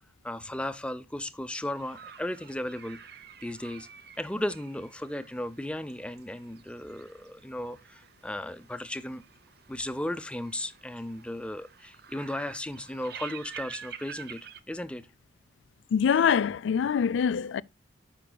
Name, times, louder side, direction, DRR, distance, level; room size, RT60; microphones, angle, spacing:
voice 1, 0.2-3.0 3.4-3.9 4.2-9.2 9.7-14.4 14.7-15.0, left 1 dB, 5° left, 0.5 m, -35 dB
sound 1, 1.7-14.6, right 7 dB, 60° right, 0.7 m, -49 dB
voice 2, 15.9-17.6, left 7 dB, 85° left, 0.4 m, -24 dB
13.5 x 5.9 x 2.2 m
head